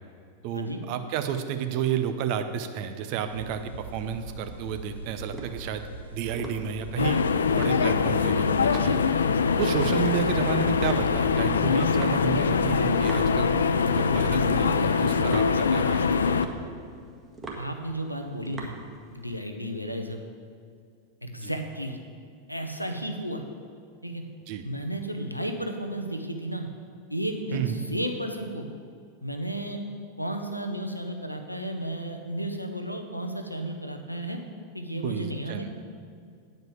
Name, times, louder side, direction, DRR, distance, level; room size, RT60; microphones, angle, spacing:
voice 1, 0.4-7.2 7.6-9.0 9.6-16.1 21.4-21.5 24.5-24.6 27.5-27.8 35.0-35.7, right 9 dB, 45° right, 8 dB, 0.7 m, -31 dB
sound 1, 3.3-10.4, right 3 dB, 75° right, 0.9 m, -41 dB
sound 2, 5.2-19.4, right 3 dB, 15° right, 1.6 m, -43 dB
sound 3, 7.0-16.5, left 5 dB, 70° left, 0.4 m, -23 dB
voice 2, 17.6-18.8 19.1-20.2 21.2-22.0 22.5-23.4 24.0-24.2 24.6-26.7 27.1-28.7 29.2-29.8 30.2-34.4 34.7-35.7, right 1 dB, 90° left, 5 dB, 0.8 m, -33 dB
8.9 x 5.3 x 7.6 m, 2.3 s
figure-of-eight pair, 90°, 0 cm